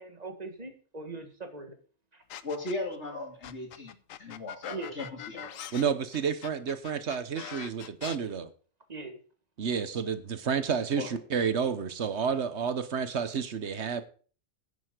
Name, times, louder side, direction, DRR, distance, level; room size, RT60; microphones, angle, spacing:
voice 1, 0.0-1.8 2.1-2.2 4.7-5.0 5.3-5.6 8.9-9.2, right 3 dB, 30° right, 6 dB, 1.7 m, -41 dB
sound 1, 2.3-3.0 3.4-8.2, left 11 dB, 80° left, 1.1 m, -42 dB
voice 2, 2.4-5.4 11.0-11.1, left 2 dB, 55° left, 2 dB, 3.0 m, -37 dB
voice 3, 5.7-8.5 9.6-14.0, right 6 dB, 60° right, 11 dB, 1.3 m, -30 dB
10.0 x 9.1 x 5.1 m, 0.41 s
omnidirectional pair, 1.4 m